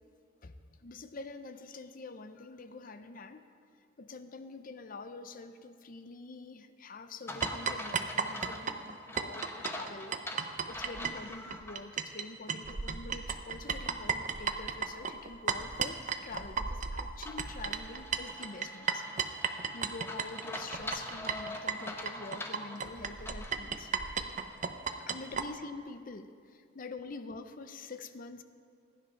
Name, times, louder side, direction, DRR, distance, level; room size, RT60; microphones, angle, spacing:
voice 1, 0.4-3.4 3.7-23.9 25.0-28.4, left 3 dB, 45° left, 10 dB, 0.6 m, -46 dB
sound 1, 7.3-11.8 12.2-12.3 17.3-23.6, left 1 dB, 15° left, 0.9 m, -44 dB
sound 2, 7.4-12.2 12.5-25.5, right 6 dB, 40° right, 0.7 m, -34 dB
15.5 x 10.5 x 5.7 m, 2.2 s
head